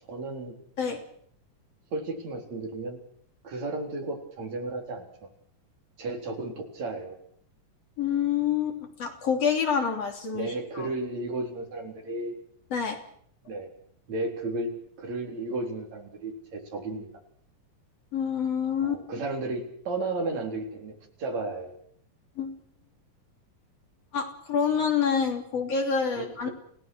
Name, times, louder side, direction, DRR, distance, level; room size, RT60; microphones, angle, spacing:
voice 1, 0.1-0.5 1.9-3.0 3.4-5.1 6.0-7.2 10.3-12.4 13.4-13.7 14.1-17.1 18.8-20.9 21.2-21.8 26.1-26.5, right 2 dB, 55° right, 2 dB, 5.0 m, -33 dB
voice 2, 8.0-10.9 12.7-13.0 18.1-19.0 22.4-22.6 24.1-26.5, left 6 dB, 45° left, 3 dB, 4.1 m, -27 dB
29.0 x 17.5 x 6.3 m, 0.64 s
omnidirectional pair, 3.9 m